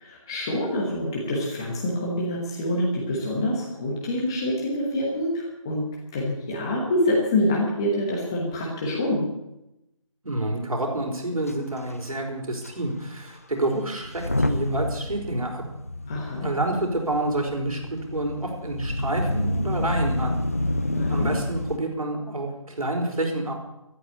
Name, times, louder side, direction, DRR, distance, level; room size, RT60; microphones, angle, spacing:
voice 1, 0.0-5.8 6.1-9.2 16.1-16.5 20.9-21.3, left 1 dB, 10° left, -3 dB, 1.1 m, -26 dB
voice 2, 10.2-15.6 16.4-20.4 20.9-23.5, right 1 dB, 80° right, 2 dB, 4.8 m, -28 dB
Motor vehicle (road) / Engine starting / Accelerating revving vroom, 11.5-11.6 11.8-12.0 12.6-12.7 14.0-21.8, left 1 dB, 25° left, 0.5 m, -29 dB
13.5 x 11.0 x 8.6 m, 0.90 s
figure-of-eight pair, 175°, 18 cm